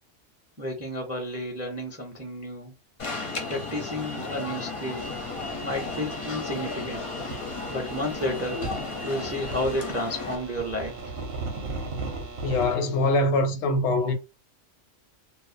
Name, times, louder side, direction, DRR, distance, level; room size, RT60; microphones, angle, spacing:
voice 1, 0.6-2.7 3.5-5.1 5.6-7.1 7.7-8.6 9.0-11.1, left 1 dB, 20° right, 0.4 m, -31 dB
Alarm, 3.0-10.3, left 3 dB, 40° left, 0.5 m, -34 dB
sound 1, 5.0-12.8, right 3 dB, 55° right, 0.8 m, -37 dB
voice 2, 12.4-14.1, left 2 dB, 75° left, 0.9 m, -23 dB
2.5 x 2.1 x 2.5 m
omnidirectional pair, 1.2 m